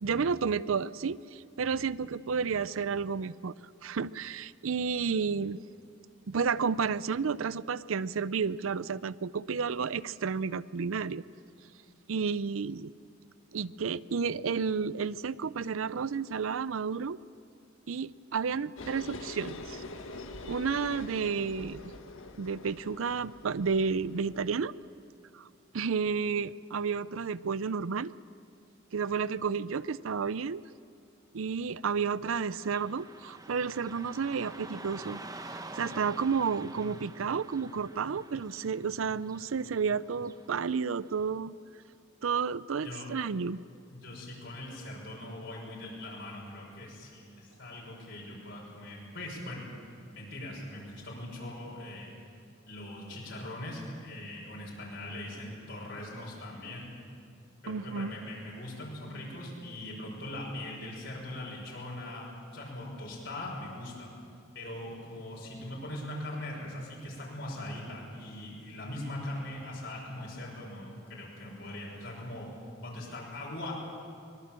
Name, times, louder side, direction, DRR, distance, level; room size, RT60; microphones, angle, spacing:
voice 1, 0.0-3.5 3.8-5.6 6.3-11.2 12.1-12.9 13.5-17.2 17.9-19.8 20.5-21.9 22.4-24.7 25.3-25.5 25.7-28.1 28.9-30.6 31.3-35.2 35.5-41.6 42.2-43.6 57.7-58.1, right 5 dB, 90° right, 18 dB, 0.5 m, -31 dB
sound 1, 18.8-24.4, left 2 dB, 80° left, 1.7 m, -44 dB
Car passing by / Traffic noise roadway noise, 32.3-41.3, right 2 dB, 20° right, 0.9 m, -48 dB
voice 2, 42.8-43.3 43.9-49.7 50.1-52.1 52.7-56.9 57.6-62.3 62.5-64.1 64.5-72.5 72.8-73.7, left 1 dB, 65° left, -5 dB, 6.0 m, -41 dB
24.0 x 22.0 x 7.6 m, 2.5 s
head